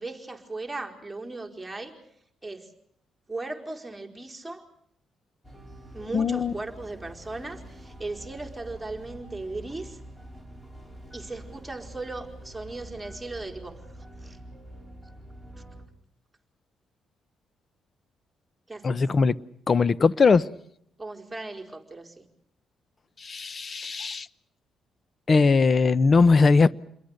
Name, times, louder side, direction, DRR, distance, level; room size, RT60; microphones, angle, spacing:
voice 1, 0.0-1.9 2.4-2.7 3.3-4.7 5.9-10.0 11.1-13.8 14.2-14.4 18.7-19.0 21.0-22.3, right 2 dB, 10° right, 1 dB, 4.6 m, -37 dB
sound 1, 5.4-15.9, right 1 dB, 10° left, 5.2 m, -45 dB
voice 2, 6.1-6.5 18.8-19.4 19.7-20.5 23.2-24.3 25.3-26.7, left 4 dB, 40° left, 18 dB, 0.9 m, -20 dB
29.5 x 22.5 x 6.6 m, 0.73 s
cardioid pair, 90°, 0 cm